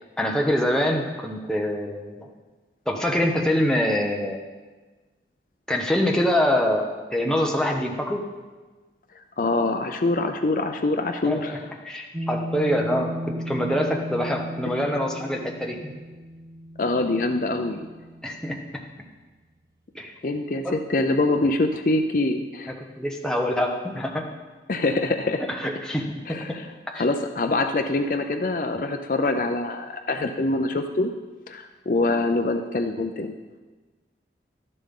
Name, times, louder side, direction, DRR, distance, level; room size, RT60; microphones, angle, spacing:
voice 1, 0.2-2.3 2.9-4.4 5.7-8.3 11.3-11.6 11.8-15.9 18.2-18.8 19.9-20.1 20.6-20.8 22.7-24.3 25.5-26.4 26.9-27.0, left 1 dB, 5° left, 0 dB, 1.0 m, -25 dB
voice 2, 9.2-11.6 16.8-17.9 20.2-22.7 24.7-25.5 26.3-26.6 26.9-31.1 31.5-33.3, left 2 dB, 50° left, 6 dB, 0.5 m, -24 dB
sound 1, 12.1-18.9, equal, 20° right, 0.7 m, -35 dB
12.5 x 10.5 x 3.8 m, 1.3 s
head